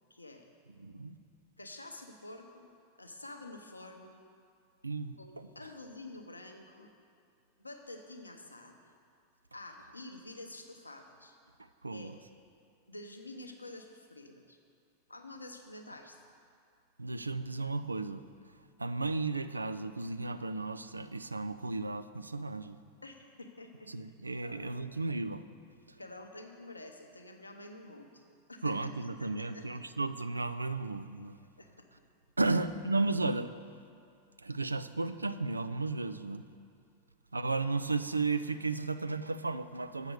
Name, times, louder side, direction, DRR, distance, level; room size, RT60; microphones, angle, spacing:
voice 1, 0.1-0.5 1.6-2.7 3.0-4.1 5.2-6.9 7.6-8.9 9.5-11.4 11.9-12.2 12.9-14.6 15.1-16.2 23.0-23.9 24.4-24.8 26.0-28.8 29.2-29.7 31.6-31.9, left 2 dB, 80° left, 4 dB, 0.7 m, -48 dB
voice 2, 0.8-1.2 4.8-5.5 11.8-12.1 17.0-18.2 18.8-22.8 23.9-25.4 28.6-31.4 32.4-33.5 34.4-36.4 37.3-40.1, right 3 dB, 80° right, 12 dB, 0.3 m, -34 dB
8.0 x 6.6 x 6.7 m, 2.4 s
figure-of-eight pair, 90°, 0 cm